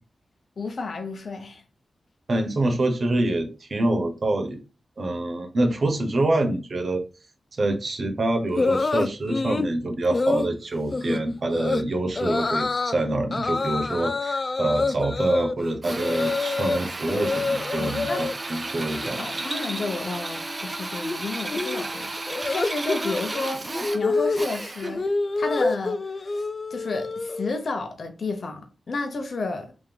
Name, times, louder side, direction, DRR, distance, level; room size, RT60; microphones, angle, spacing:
voice 1, 0.6-1.6 17.8-18.3 19.2-25.1 25.4-29.7, left 3 dB, 70° left, 0.8 m, -32 dB
voice 2, 2.3-4.6 5.0-7.0 7.5-19.3, right 2 dB, 60° right, 0.9 m, -26 dB
sound 1, 8.6-9.7 10.1-10.5 10.9-11.2 11.5-11.8 12.2-13.0 13.3-16.8 17.1-18.3 18.7-19.1 19.3-27.5, left 3 dB, 45° left, 0.4 m, -27 dB
Drill, 15.8-25.1, right 2 dB, 35° right, 0.6 m, -33 dB
3.6 x 2.9 x 3.4 m
cardioid pair, 55°, 0 cm